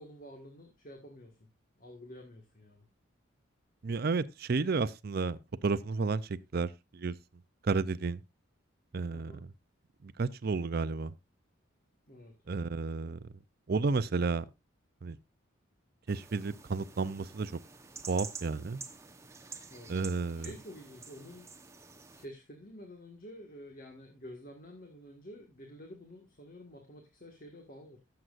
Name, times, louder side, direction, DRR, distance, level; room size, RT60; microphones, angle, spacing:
voice 1, 0.0-1.4 1.7-2.8 9.1-9.4 12.1-12.7 19.7-19.9 20.3-21.5 22.2-28.0, equal, 40° left, 1.7 m, -50 dB
voice 2, 3.8-7.1 7.6-8.2 8.9-9.3 10.0-11.1 12.5-13.2 13.7-14.4 15.0-15.2 16.1-17.5 18.1-18.8 19.9-20.5, right 4 dB, 45° right, 0.5 m, -32 dB
sound 1, 16.1-22.3, right 4 dB, 15° right, 0.9 m, -49 dB
17.5 x 7.7 x 2.5 m
head